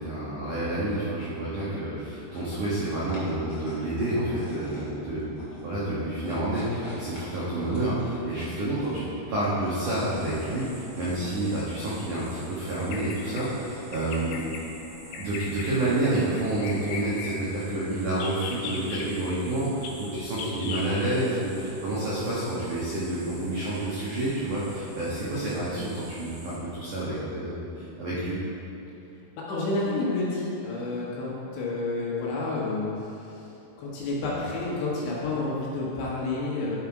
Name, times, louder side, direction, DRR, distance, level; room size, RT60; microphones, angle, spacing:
voice 1, 0.0-5.3 5.6-14.4 15.2-28.4, right 1 dB, 80° right, -9 dB, 1.8 m, -29 dB
sound 1, 2.2-17.5, equal, 45° left, 1.7 m, -48 dB
sound 2, 9.7-26.6, equal, 55° right, 2.5 m, -43 dB
Bird vocalization bird call bird song, 12.7-13.5 13.9-14.6 15.1-15.7 16.3-17.3 18.1-19.0 19.8-19.9 20.4-20.9, left 5 dB, 90° left, 3.8 m, -37 dB
voice 2, 29.4-33.5 33.8-36.8, left 2 dB, 70° left, -6 dB, 3.5 m, -30 dB
10.5 x 5.7 x 4.8 m, 2.8 s
omnidirectional pair, 5.9 m